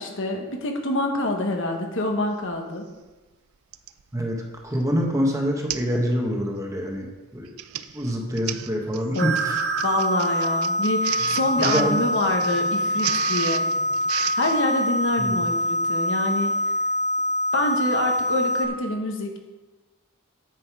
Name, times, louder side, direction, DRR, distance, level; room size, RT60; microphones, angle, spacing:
voice 1, 0.0-2.9 9.1-9.3 9.8-13.7 14.3-16.5 17.5-19.4, left 1 dB, 60° left, 3 dB, 1.3 m, -26 dB
Printer, 2.5-2.6 3.7-4.0 4.6-4.8 5.1-5.2 5.7-6.0 6.3-6.6 7.3-14.6, right 11 dB, 80° right, 0.5 m, -33 dB
voice 2, 4.1-7.1 7.3-7.5 7.9-9.6 11.6-12.0 15.2-15.4, equal, 15° right, 0 dB, 1.3 m, -26 dB
sound 1, 9.2-18.7, equal, 55° right, 1.1 m, -25 dB
9.3 x 7.6 x 4.8 m, 1.2 s
head